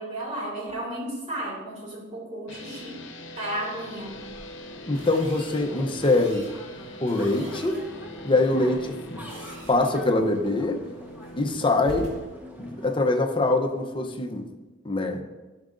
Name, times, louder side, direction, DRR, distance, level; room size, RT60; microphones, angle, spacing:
voice 1, 0.0-3.0 3.4-4.2, right 1 dB, 40° right, -3 dB, 2.3 m, -33 dB
sound 1, 2.5-12.2, left 1 dB, 75° left, 0.8 m, -42 dB
sound 2, 3.9-12.9, equal, 10° right, 1.1 m, -45 dB
voice 2, 4.9-6.5 7.0-7.8 8.2-9.2 9.7-10.8 11.4-12.1 12.6-14.5 14.8-15.2, left 2 dB, 25° left, 4 dB, 0.7 m, -24 dB
sound 3, 4.9-14.1, equal, 75° right, 1.7 m, -47 dB
11.5 x 6.3 x 2.5 m, 1.2 s
head